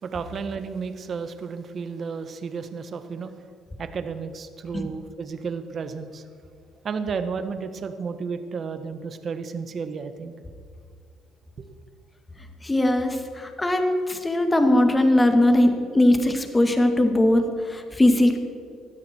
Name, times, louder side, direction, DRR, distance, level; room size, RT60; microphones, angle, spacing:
voice 1, 0.0-3.3 3.8-6.2 6.8-10.3 11.6-11.7, right 5 dB, 50° right, 9 dB, 1.4 m, -32 dB
voice 2, 12.6-18.4, left 1 dB, 15° left, 5 dB, 2.2 m, -20 dB
19.0 x 13.0 x 4.6 m, 2.3 s
cardioid pair, 90°, 0 cm